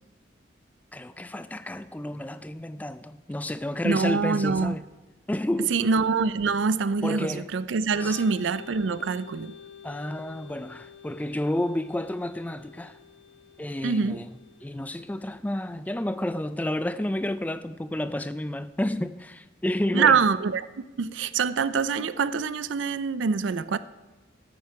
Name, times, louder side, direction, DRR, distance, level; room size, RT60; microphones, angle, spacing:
voice 1, 0.9-4.8 5.3-5.8 7.0-7.5 8.0-8.2 9.8-13.0 13.6-14.3 14.6-20.2, left 1 dB, 10° left, 0.3 m, -30 dB
voice 2, 3.8-4.8 5.7-9.5 13.8-14.2 19.9-23.8, right 5 dB, 85° right, 0.5 m, -25 dB
Organ, 7.9-15.4, left 7 dB, 85° left, 1.4 m, -48 dB
13.5 x 9.0 x 4.7 m
head